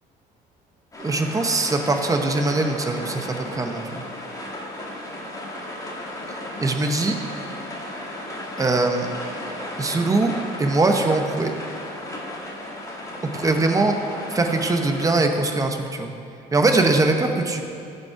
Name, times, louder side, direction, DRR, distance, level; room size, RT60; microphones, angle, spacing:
sound 1, 0.9-15.1, left 1 dB, 20° left, 1.8 m, -35 dB
voice 1, 1.0-4.0 6.6-7.2 8.6-9.1 9.8-10.3 10.6-11.5 13.2-14.0 14.3-16.1 16.5-17.6, right 2 dB, 20° right, 4 dB, 0.9 m, -21 dB
14.5 x 5.4 x 4.7 m, 2.6 s
cardioid pair, 110°, 17 cm